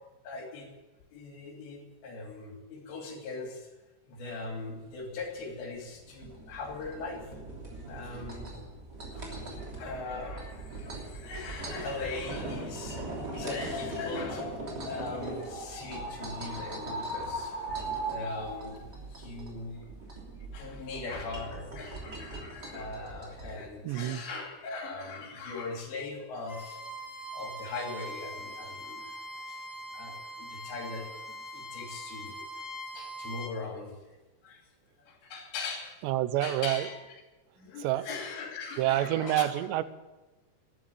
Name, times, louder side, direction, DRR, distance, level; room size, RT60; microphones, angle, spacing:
voice 1, 0.2-0.7 1.1-3.7 4.1-7.3 7.8-8.6 9.1-14.5 14.8-19.8 20.1-20.2 20.5-26.8 27.3-32.4 32.9-34.0 34.4-34.7 35.0-36.0 36.4-37.0 37.6-39.5, left 3 dB, 80° left, 1 dB, 5.1 m, -40 dB
sound 1, 4.4-23.7, right 2 dB, 25° right, 3.1 m, -42 dB
sound 2, 13.0-18.8, right 1 dB, 50° left, 5.9 m, -38 dB
voice 2, 23.8-24.2 36.0-36.9 37.8-38.1 38.8-39.8, right 14 dB, 85° right, 14 dB, 3.0 m, -28 dB
Bowed string instrument, 26.4-33.5, equal, 20° left, 1.7 m, -42 dB
13.0 x 11.5 x 8.6 m, 1.1 s
omnidirectional pair, 4.9 m